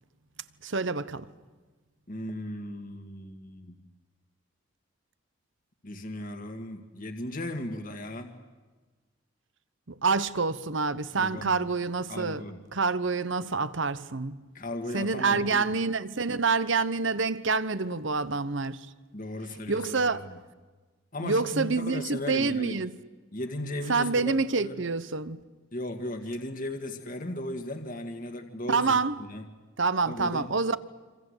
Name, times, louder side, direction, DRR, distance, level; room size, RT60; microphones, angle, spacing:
voice 1, 0.6-1.3 9.9-12.4 12.7-14.4 14.9-18.9 19.7-20.3 21.2-22.9 23.9-25.4 28.7-29.1 29.8-30.8, right 4 dB, 65° right, 1.0 m, -27 dB
voice 2, 2.1-3.8 5.8-8.3 11.1-11.7 12.1-12.6 14.5-15.7 19.1-20.4 21.1-22.8 23.3-24.8 25.7-29.5 30.0-30.5, left 1 dB, 40° left, 1.8 m, -36 dB
26.5 x 26.5 x 8.1 m
head